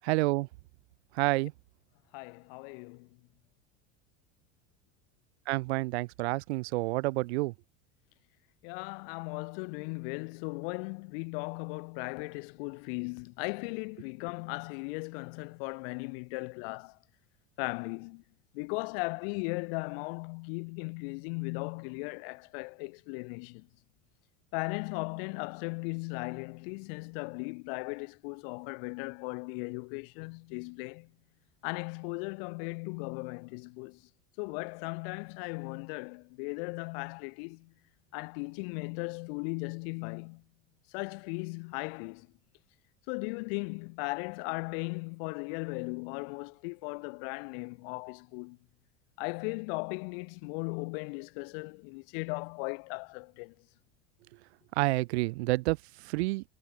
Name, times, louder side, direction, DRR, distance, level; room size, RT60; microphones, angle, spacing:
voice 1, 0.0-0.5 1.2-1.5 5.5-7.5 54.8-55.8 56.0-56.4, right 22 dB, 75° right, 3.6 m, -28 dB
voice 2, 2.1-3.1 8.6-16.9 17.6-18.2 18.5-23.7 24.5-31.1 31.6-34.0 34.4-37.7 38.1-40.4 40.9-42.3 43.1-48.6 49.2-53.5, left 34 dB, 60° left, 4.8 m, -37 dB
cardioid pair, 175°, 33 cm